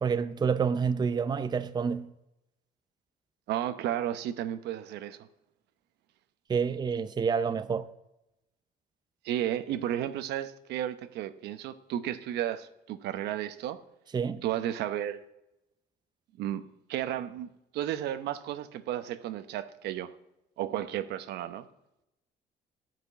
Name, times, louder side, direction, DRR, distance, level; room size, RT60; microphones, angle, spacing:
voice 1, 0.0-2.1 6.5-7.9 14.1-14.4, right 6 dB, 25° right, 0.6 m, -28 dB
voice 2, 3.5-5.2 9.2-13.8 14.4-15.2 16.4-16.6 16.9-17.5 17.7-20.1 20.6-21.7, right 11 dB, 80° right, 0.9 m, -33 dB
12.5 x 6.0 x 8.2 m
cardioid pair, 110°, 17 cm